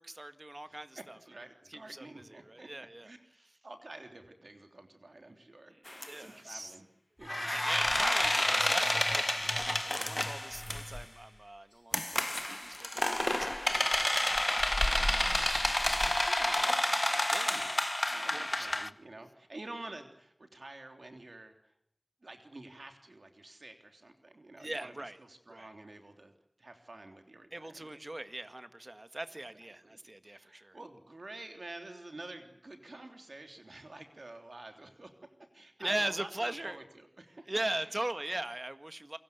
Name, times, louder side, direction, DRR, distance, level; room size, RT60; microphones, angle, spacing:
voice 1, 0.0-1.2 1.7-3.1 5.7-6.8 7.5-14.4 14.7-15.2 15.5-16.3 17.3-17.6 18.3-18.8 24.6-25.2 25.5-25.7 27.5-30.8 35.8-36.8 37.5-39.2, right 1 dB, 45° right, 10 dB, 1.8 m, -40 dB
voice 2, 0.7-2.7 3.0-3.2 3.6-6.9 7.2-7.5 14.9-15.5 16.2-17.8 18.1-21.5 22.2-26.3 26.6-28.0 29.8-35.2 35.5-37.9, right 2 dB, 90° right, 6 dB, 3.4 m, -49 dB
sound 1, 5.9-6.1 7.3-11.0 11.9-18.9, left 1 dB, 30° left, 1.1 m, -30 dB
29.0 x 23.0 x 8.2 m, 0.71 s
wide cardioid pair, 45°, 0 cm